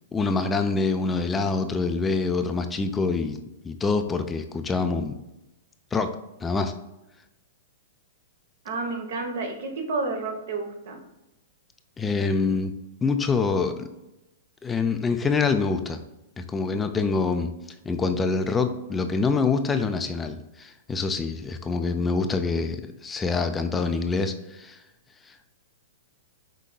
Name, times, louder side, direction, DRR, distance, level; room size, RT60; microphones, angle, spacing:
voice 1, 0.1-5.1 5.9-6.1 6.4-6.7 12.0-12.7 13.0-13.9 14.6-16.0 16.4-17.5 17.8-24.8 25.3-25.4, left 4 dB, 15° left, 7 dB, 0.3 m, -25 dB
voice 2, 8.6-11.0, right 3 dB, 65° right, 3 dB, 1.0 m, -30 dB
5.1 x 3.6 x 2.3 m, 0.95 s
hypercardioid pair, 125°, 0 cm